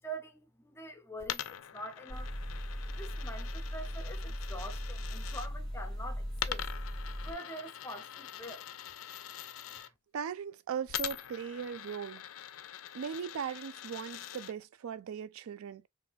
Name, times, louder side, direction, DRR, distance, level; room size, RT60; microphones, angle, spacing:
voice 1, 0.0-2.3 2.9-6.6 7.2-8.7, right 1 dB, 10° left, 0.5 m, -45 dB
Coin (dropping), 1.2-5.5 6.3-9.9 10.9-14.5, left 11 dB, 70° left, 0.3 m, -43 dB
sound 1, 2.1-7.3, equal, 20° right, 2.1 m, -38 dB
voice 2, 10.1-12.2 12.9-15.9, right 7 dB, 80° right, 0.3 m, -39 dB
3.9 x 2.6 x 2.3 m
head